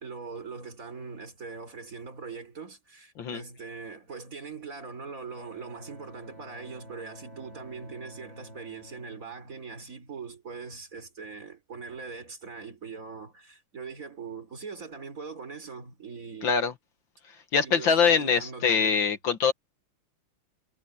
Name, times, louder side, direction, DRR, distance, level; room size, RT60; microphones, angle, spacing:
voice 1, 0.0-16.5 17.6-19.0, right 5 dB, 35° right, 3.8 m, -41 dB
Bowed string instrument, 5.3-10.3, equal, 55° right, 8.1 m, -50 dB
voice 2, 16.4-16.7 17.5-19.5, left 6 dB, 60° left, 2.1 m, -23 dB
omnidirectional pair, 2.4 m